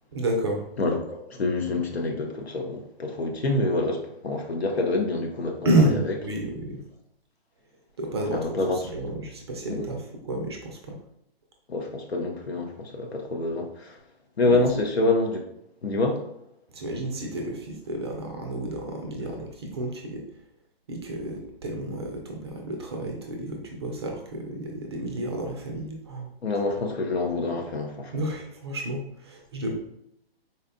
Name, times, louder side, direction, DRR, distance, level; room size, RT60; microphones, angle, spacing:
voice 1, 0.1-0.6 5.6-6.8 8.0-8.4 8.7-11.0 14.4-14.6 16.7-20.2 20.9-26.3 28.1-29.7, right 1 dB, 25° right, 1 dB, 0.4 m, -30 dB
voice 2, 0.8-5.7 6.0-6.1 8.2-8.8 9.6-9.9 11.7-14.0 14.4-15.5 15.8-16.2 19.2-19.3 26.4-28.2, left 2 dB, 85° left, 2 dB, 0.8 m, -27 dB
4.0 x 2.1 x 2.5 m, 0.78 s
hypercardioid pair, 140°, 31 cm